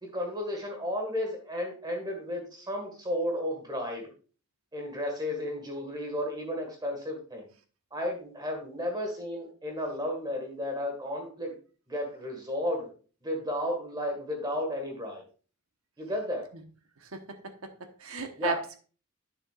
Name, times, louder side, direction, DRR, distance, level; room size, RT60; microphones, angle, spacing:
voice 1, 0.0-4.1 4.7-7.5 7.9-11.5 11.9-12.9 13.2-15.2 16.0-16.5 18.4-18.6, left 1 dB, 20° right, 2 dB, 1.7 m, -33 dB
voice 2, 17.0-17.7 18.0-18.8, right 3 dB, 80° right, 6 dB, 1.2 m, -35 dB
9.7 x 7.1 x 2.4 m, 0.38 s
head